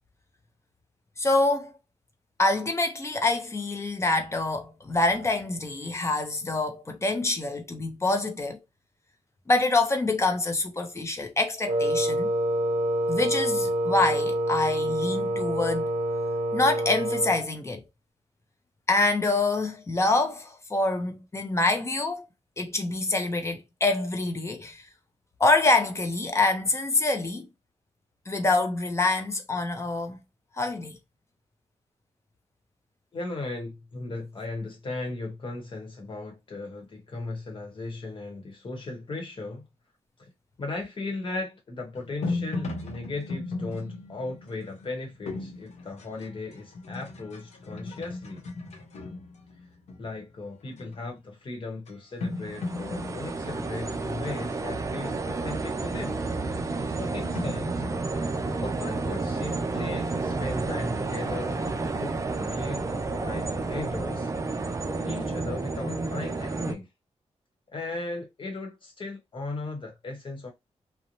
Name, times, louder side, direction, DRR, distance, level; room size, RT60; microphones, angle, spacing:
voice 1, 1.2-1.7 2.4-8.6 9.5-12.3 13.1-15.9 16.5-17.8 18.9-22.2 22.6-24.8 25.4-27.5 28.3-30.2 30.6-31.0, left 2 dB, 25° left, 0.6 m, -26 dB
Wind instrument woodwind instrument, 11.7-17.4, right 1 dB, 80° right, 0.6 m, -27 dB
voice 2, 33.1-39.7 40.2-40.3 40.6-48.5 50.0-56.2 57.0-57.8 58.5-61.6 62.0-64.3 64.9-66.9 67.7-70.5, left 2 dB, 45° left, 1.0 m, -37 dB
sound 1, 41.9-50.2 50.7-51.0 51.9-52.0 52.2-54.7 57.3-59.2, left 3 dB, 75° left, 0.7 m, -37 dB
sound 2, 52.3-66.7, right 3 dB, 25° right, 0.4 m, -31 dB
2.6 x 2.1 x 2.9 m
wide cardioid pair, 130°, 12 cm